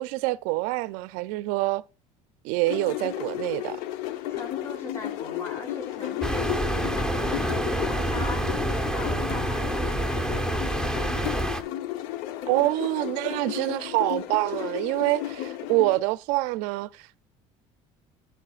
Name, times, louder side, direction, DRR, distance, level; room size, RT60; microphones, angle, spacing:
voice 1, 0.0-1.8 2.4-3.8 12.5-17.2, right 19 dB, 80° right, 0.4 m, -26 dB
sound 1, 2.7-16.0, left 13 dB, 85° left, 0.8 m, -34 dB
voice 2, 4.3-11.6, left 2 dB, 30° left, 4.2 m, -40 dB
sound 2, 6.2-11.6, right 1 dB, 5° left, 0.9 m, -27 dB
12.5 x 9.0 x 2.4 m
cardioid pair, 130°, 14 cm